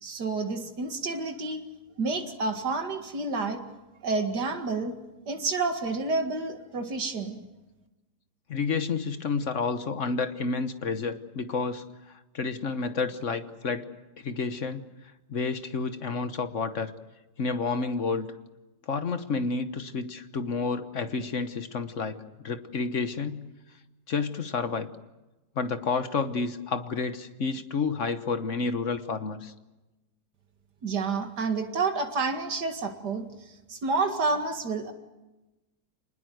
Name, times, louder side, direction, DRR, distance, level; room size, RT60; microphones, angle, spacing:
voice 1, 0.0-1.6 2.0-3.6 4.0-4.9 5.3-7.4 30.8-33.2 33.7-34.9, right 3 dB, 90° right, 5 dB, 2.6 m, -29 dB
voice 2, 8.5-13.9 14.2-14.8 15.3-16.9 17.4-18.3 18.9-23.5 24.1-24.9 25.5-29.5, left 4 dB, 50° left, 10 dB, 1.4 m, -30 dB
26.5 x 20.0 x 7.8 m, 1.1 s
omnidirectional pair, 1.7 m